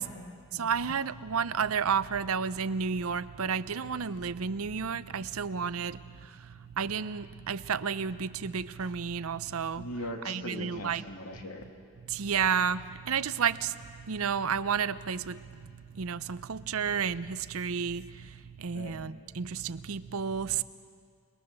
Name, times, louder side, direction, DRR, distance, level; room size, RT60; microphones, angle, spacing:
voice 1, 0.0-0.7 9.8-11.6 18.7-18.9, left 1 dB, 80° left, 2 dB, 2.7 m, -40 dB
voice 2, 0.5-9.9 10.2-11.0 12.1-20.6, right 6 dB, 70° right, 15 dB, 0.6 m, -32 dB
29.0 x 20.5 x 6.9 m, 2.1 s
head